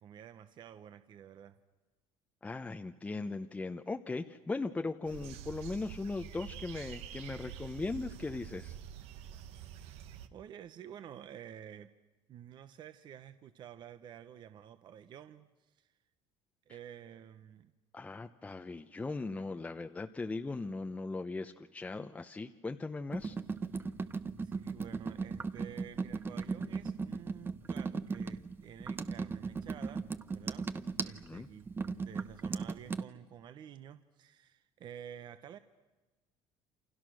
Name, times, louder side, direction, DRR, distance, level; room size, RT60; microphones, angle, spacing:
voice 1, 0.0-1.6 9.6-10.0 10.3-11.9 12.3-15.9 16.7-17.7 24.4-30.1 30.3-30.7 31.0-35.6, right 9 dB, 45° right, 11 dB, 1.1 m, -51 dB
voice 2, 2.4-8.8 17.9-23.4 31.0-31.5, left 3 dB, 15° left, 6 dB, 0.9 m, -39 dB
sound 1, 5.0-10.3, right 9 dB, 70° right, 1.4 m, -47 dB
sound 2, 23.1-33.0, right 4 dB, 20° right, 0.9 m, -37 dB
28.5 x 27.5 x 6.4 m, 1.2 s
cardioid pair, 135°, 11 cm